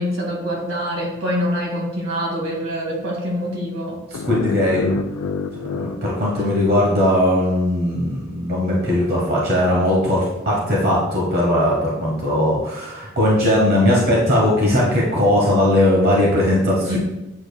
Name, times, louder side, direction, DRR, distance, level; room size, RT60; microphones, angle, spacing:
voice 1, 0.0-4.0 16.8-17.0, equal, 80° right, -2 dB, 2.1 m, -25 dB
sound 1, 4.1-7.2, left 4 dB, 85° left, 0.4 m, -29 dB
voice 2, 4.2-5.0 5.8-17.0, left 1 dB, 50° right, -4 dB, 1.1 m, -18 dB
8.4 x 5.0 x 2.2 m, 0.99 s
head